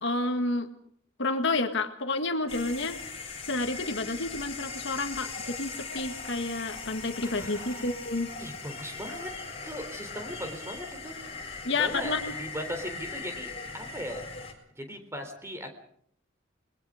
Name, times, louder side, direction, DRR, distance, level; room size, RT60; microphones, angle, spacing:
voice 1, 0.0-0.7 1.2-3.0 3.4-8.3 11.6-12.2, left 3 dB, 60° left, 6 dB, 1.8 m, -30 dB
sound 1, 2.5-14.5, left 4 dB, 30° left, 4.3 m, -40 dB
voice 2, 7.2-7.9 8.4-9.3 9.6-11.2 11.7-14.2 14.8-15.7, equal, 15° right, 6 dB, 3.8 m, -38 dB
29.0 x 21.0 x 5.0 m, 0.65 s
head